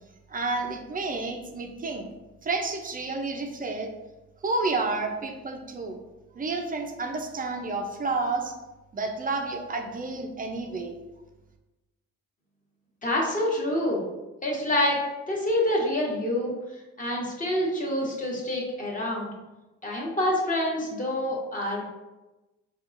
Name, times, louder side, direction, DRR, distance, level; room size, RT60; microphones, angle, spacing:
voice 1, 0.3-2.1 2.4-3.9 4.4-6.0 6.3-8.6 8.9-11.0, right 3 dB, 30° right, 4 dB, 0.5 m, -30 dB
voice 2, 13.0-14.0 14.4-15.0 15.3-16.5 17.0-19.3 19.8-21.9, left 1 dB, 25° left, -3 dB, 1.1 m, -27 dB
4.5 x 2.4 x 2.5 m, 1.1 s
cardioid pair, 90°, 30 cm